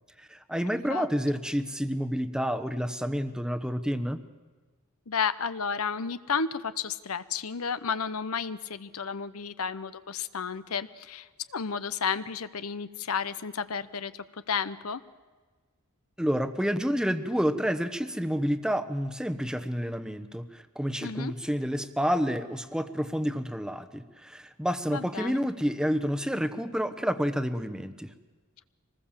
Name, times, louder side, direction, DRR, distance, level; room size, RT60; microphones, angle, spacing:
voice 1, 0.2-4.2 16.2-28.1, equal, 5° right, 9 dB, 1.0 m, -29 dB
voice 2, 5.1-15.0 21.0-21.3 24.9-25.4, left 6 dB, 80° left, 14 dB, 0.8 m, -32 dB
25.0 x 20.0 x 7.4 m, 1.4 s
head